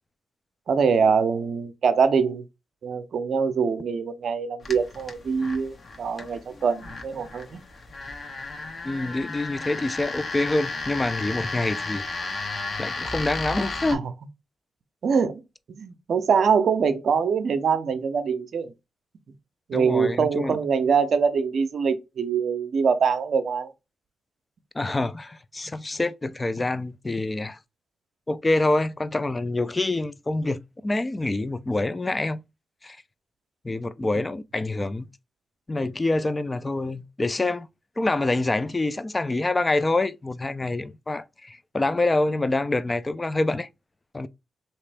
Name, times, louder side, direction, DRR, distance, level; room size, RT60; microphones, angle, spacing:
voice 1, 0.7-2.4 2.8-7.6 13.9-14.0 15.0-15.4 15.7-18.7 19.7-23.7, right 6 dB, 65° right, 0.5 m, -23 dB
sound 1, 4.6-13.9, left 3 dB, 50° left, 0.9 m, -34 dB
voice 2, 8.8-12.0 12.8-14.1 19.7-20.6 24.8-27.6 28.3-32.4 32.8-33.0 33.6-35.1 35.7-37.7 38.0-43.7 44.1-44.3, left 2 dB, 25° left, 0.4 m, -26 dB
3.2 x 2.9 x 3.3 m
supercardioid pair, 45°, 0 cm